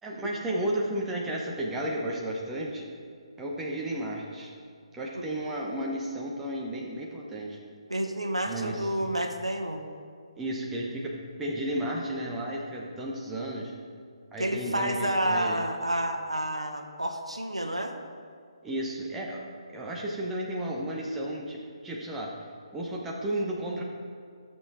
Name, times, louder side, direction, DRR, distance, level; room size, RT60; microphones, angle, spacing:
voice 1, 0.0-2.9 3.4-4.5 4.9-7.6 8.4-9.2 10.4-13.7 14.3-15.6 18.6-19.4 19.7-21.6 21.8-22.4 22.7-23.8, right 1 dB, 10° right, -3 dB, 1.0 m, -33 dB
voice 2, 7.9-9.8 14.4-17.9, right 1 dB, 80° right, 4 dB, 1.1 m, -29 dB
14.0 x 6.7 x 3.8 m, 2.2 s
figure-of-eight pair, 140°, 3 cm